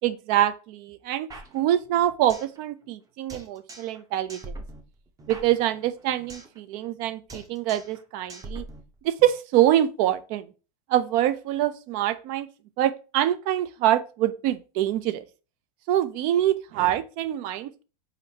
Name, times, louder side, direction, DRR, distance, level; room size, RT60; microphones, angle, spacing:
voice 1, 0.0-1.3 1.5-4.5 5.3-8.6 9.0-10.5 10.9-12.5 12.8-15.2 15.9-17.8, right 12 dB, 45° right, 0.4 m, -25 dB
sound 1, 1.3-2.6 2.8-2.9 3.3-4.0 4.3-6.6 6.8-7.0 7.3-8.0 8.3-9.3, right 2 dB, 15° right, 0.7 m, -42 dB
4.2 x 4.0 x 2.7 m
supercardioid pair, 125°, 20 cm